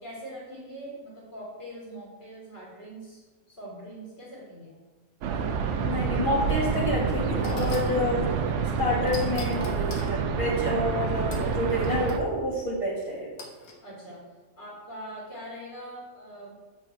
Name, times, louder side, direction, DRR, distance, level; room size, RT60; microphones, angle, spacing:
voice 1, 0.0-4.7 13.8-14.2 14.6-16.6, right 1 dB, 45° left, -7 dB, 2.5 m, -42 dB
sound 1, 5.2-12.2, right 6 dB, 65° right, 0.8 m, -28 dB
voice 2, 5.8-8.3 8.8-13.3, left 1 dB, 20° left, -7 dB, 2.2 m, -28 dB
sound 2, 7.4-8.0 9.1-10.1 11.3-12.2 13.4-13.8, left 3 dB, 85° left, 1.4 m, -43 dB
7.8 x 4.3 x 4.6 m, 1.3 s
omnidirectional pair, 1.5 m